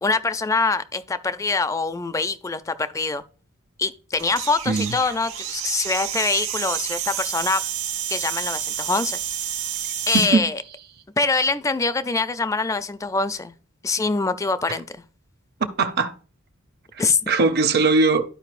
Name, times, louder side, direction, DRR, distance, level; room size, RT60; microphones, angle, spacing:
voice 1, 0.0-3.2 3.8-7.6 8.1-9.2 10.1-10.6 11.2-13.5 13.8-14.8 17.0-17.2, left 3 dB, 15° left, 0.3 m, -24 dB
sound 1, 4.2-10.3, right 10 dB, 80° right, 1.2 m, -29 dB
voice 2, 10.1-10.5 15.6-16.1 17.3-18.2, right 3 dB, 50° right, 0.6 m, -20 dB
12.5 x 4.7 x 2.4 m
head